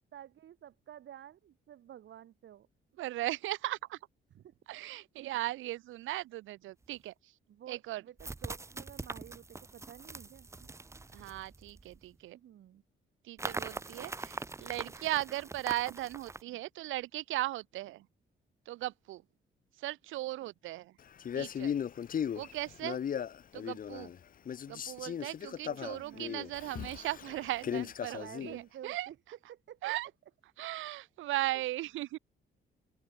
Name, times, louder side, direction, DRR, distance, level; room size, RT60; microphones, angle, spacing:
voice 1, 0.1-2.7 4.3-4.5 4.8-5.1 7.5-10.5 12.3-12.8 25.6-26.5 28.1-29.2 29.5-29.9 31.5-31.6, right 11 dB, 70° right, 2.8 m, -51 dB
voice 2, 3.0-4.0 4.7-7.3 7.7-8.0 11.1-12.4 13.2-18.1 18.7-19.2 19.8-20.9 21.3-21.7 22.3-23.0 23.5-24.1 24.7-29.1 29.8-30.1 30.6-32.2, right 16 dB, 85° right, 0.7 m, -37 dB
sound 1, 6.8-6.9 8.2-12.0 13.4-16.4, right 3 dB, 15° right, 0.6 m, -43 dB
Male speech man speaking, 21.2-24.2 24.5-28.6, left 8 dB, 45° left, 0.8 m, -37 dB
open air
cardioid pair, 90°, 20 cm